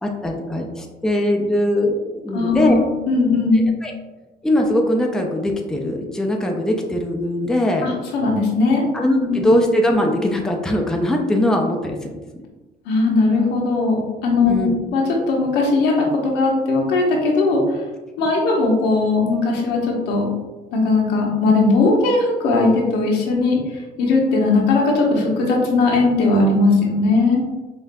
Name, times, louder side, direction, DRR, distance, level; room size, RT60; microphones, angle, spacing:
voice 1, 0.0-2.7 3.8-3.9 4.4-7.9 8.9-12.2 14.5-14.8, left 1 dB, 5° left, 1 dB, 0.5 m, -20 dB
voice 2, 2.3-3.8 7.8-9.4 12.9-17.8 18.2-20.3 20.7-27.4, left 3 dB, 85° left, -1 dB, 1.0 m, -18 dB
5.4 x 2.5 x 2.2 m, 1.2 s
cardioid pair, 110°, 17 cm